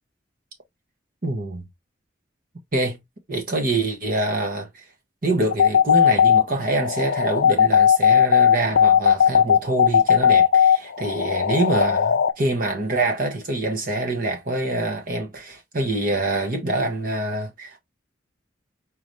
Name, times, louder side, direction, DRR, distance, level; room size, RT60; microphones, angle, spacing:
voice 1, 1.2-1.6 2.7-3.0 3.3-4.8 5.2-17.8, right 2 dB, 45° right, 1.1 m, -25 dB
sound 1, 5.5-12.3, left 8 dB, 85° left, 0.4 m, -17 dB
5.2 x 3.0 x 3.1 m
head